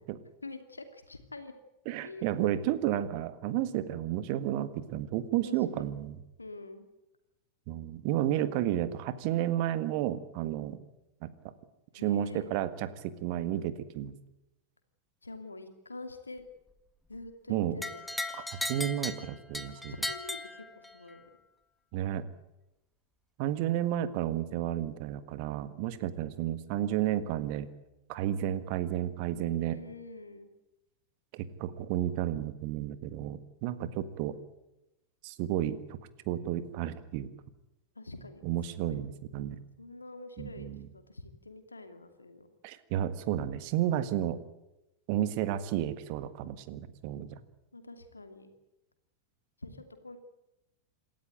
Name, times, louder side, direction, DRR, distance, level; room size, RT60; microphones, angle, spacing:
voice 1, 0.4-1.5 2.0-2.4 5.4-5.9 6.4-6.9 12.0-12.5 15.2-16.4 17.1-18.0 19.7-21.2 29.7-30.5 38.0-38.4 38.8-39.0 39.8-40.7 40.9-42.5 47.7-48.5 49.6-50.2, left 2 dB, 80° left, 8 dB, 2.6 m, -46 dB
voice 2, 1.8-6.2 7.7-10.8 11.2-11.5 12.0-14.1 17.5-17.8 18.3-19.9 21.9-22.2 23.4-27.7 28.1-29.8 31.3-34.4 35.2-36.0 36.3-37.3 38.4-39.6 40.4-40.8 42.6-44.4 45.1-47.3, right 12 dB, 45° right, 13 dB, 1.7 m, -32 dB
sound 1, 17.8-21.2, left 1 dB, 5° left, 1.6 m, -37 dB
27.5 x 13.5 x 9.2 m, 0.93 s
figure-of-eight pair, 90°, 0 cm